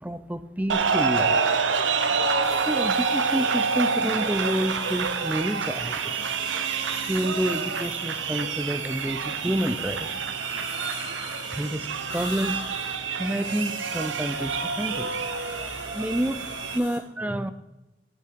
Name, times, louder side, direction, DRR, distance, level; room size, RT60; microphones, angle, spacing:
voice 1, 0.0-1.4 2.7-6.4 7.1-10.2 11.5-12.7 13.2-15.1 15.9-16.5 16.7-17.5, equal, 10° right, 11 dB, 0.4 m, -29 dB
sound 1, 0.7-16.8, right 5 dB, 80° right, 0.7 m, -27 dB
sound 2, 2.4-17.0, left 3 dB, 90° left, 2.2 m, -43 dB
8.3 x 8.1 x 4.5 m, 1.0 s
head